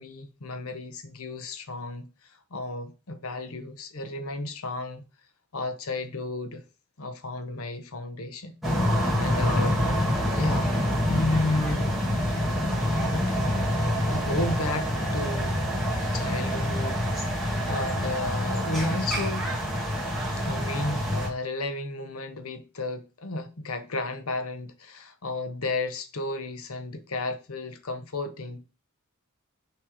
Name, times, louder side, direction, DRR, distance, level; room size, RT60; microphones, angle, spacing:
voice 1, 0.0-5.0 5.5-6.6 7.0-8.6 9.2-9.8 10.3-10.7 11.1-11.9 14.1-15.5 16.1-19.5 20.3-28.6, left 2 dB, 75° left, 1.0 m, -33 dB
sound 1, 8.6-21.3, equal, ahead, 1.6 m, -26 dB
6.1 x 3.2 x 4.8 m
head